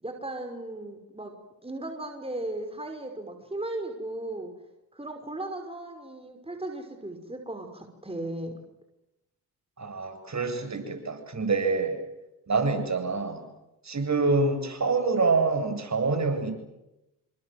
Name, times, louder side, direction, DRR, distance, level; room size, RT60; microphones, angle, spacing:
voice 1, 0.0-1.3 1.6-4.5 4.9-8.5, right 1 dB, 15° right, 4 dB, 5.6 m, -36 dB
voice 2, 9.8-11.9 12.5-13.4 13.8-16.5, right 3 dB, 45° right, 6 dB, 8.0 m, -26 dB
28.0 x 26.5 x 8.0 m, 0.92 s
supercardioid pair, 55°, 40 cm